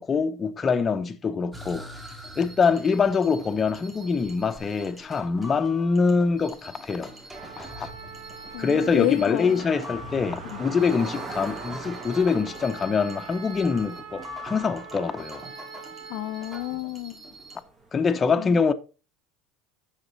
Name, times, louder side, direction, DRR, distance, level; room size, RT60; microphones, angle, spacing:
voice 1, 0.0-1.9 2.4-7.1 7.6-7.9 8.6-15.4 17.9-18.7, left 5 dB, 25° left, 0.8 m, -24 dB
sound 1, 1.5-17.6, equal, 15° right, 2.0 m, -43 dB
sound 2, 2.9-18.2, right 2 dB, 40° right, 2.3 m, -46 dB
Trumpet, 7.3-16.8, right 7 dB, 75° right, 1.0 m, -44 dB
voice 2, 8.5-9.6 10.4-10.6 16.1-17.2 18.2-18.6, left 17 dB, 60° left, 0.5 m, -30 dB
7.9 x 5.8 x 4.1 m
hypercardioid pair, 85°, 0 cm